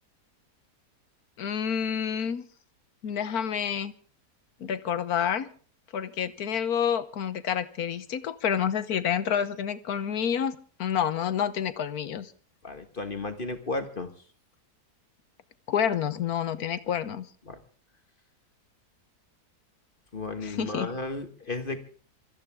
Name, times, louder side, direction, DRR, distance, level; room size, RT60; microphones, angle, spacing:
voice 1, 1.4-2.4 3.0-3.9 4.6-5.5 5.9-12.3 15.7-17.3 20.4-20.9, left 8 dB, 70° left, 12 dB, 1.5 m, -28 dB
voice 2, 12.6-14.1 17.5-17.6 20.1-21.8, left 3 dB, 35° left, 7 dB, 1.6 m, -34 dB
24.5 x 14.5 x 3.6 m, 0.41 s
omnidirectional pair, 1.7 m